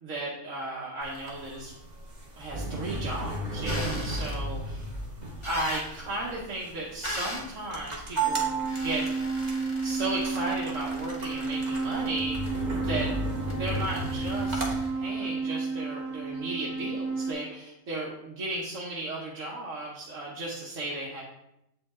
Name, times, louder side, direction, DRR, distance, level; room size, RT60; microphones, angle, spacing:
voice 1, 0.0-1.7 2.4-4.9 5.4-9.1 9.8-12.4 12.8-13.1 13.6-21.2, right 2 dB, 70° right, -5 dB, 1.5 m, -35 dB
sound 1, 1.0-14.7, right 2 dB, 35° right, 1.3 m, -34 dB
sound 2, 3.6-4.4 5.4-5.9 7.0-7.5 8.7-12.5 13.5-14.9, left 1 dB, 25° left, 1.0 m, -40 dB
sound 3, 8.2-17.3, right 4 dB, 10° right, 1.1 m, -32 dB
7.9 x 5.1 x 3.7 m, 0.85 s
omnidirectional pair, 1.4 m